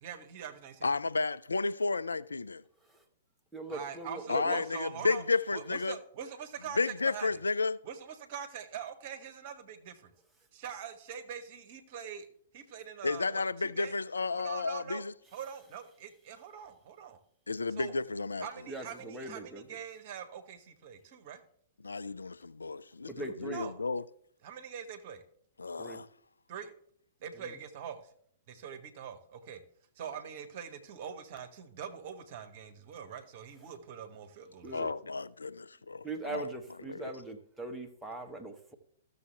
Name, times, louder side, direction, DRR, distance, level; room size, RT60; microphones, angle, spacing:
voice 1, 0.0-0.9 3.7-5.2 5.5-7.3 7.8-10.1 10.5-12.3 12.5-13.9 14.3-15.0 15.3-17.2 17.8-17.9 18.4-21.4 23.5-23.9 24.4-25.2 26.5-26.7 27.2-28.0 28.5-29.6 30.0-34.9, right 8 dB, 45° right, 1.1 m, -43 dB
voice 2, 0.8-2.6 4.3-6.0 6.8-7.8 13.0-15.1 17.5-18.5 21.8-24.0 25.6-26.1 34.7-36.5 36.9-37.1, left 4 dB, 75° left, 0.3 m, -32 dB
voice 3, 3.5-4.6 18.7-19.6 23.1-23.6 25.8-26.0 34.6-34.9 36.0-38.7, right 2 dB, 5° right, 1.1 m, -40 dB
14.0 x 6.7 x 3.3 m
figure-of-eight pair, 110°, 0 cm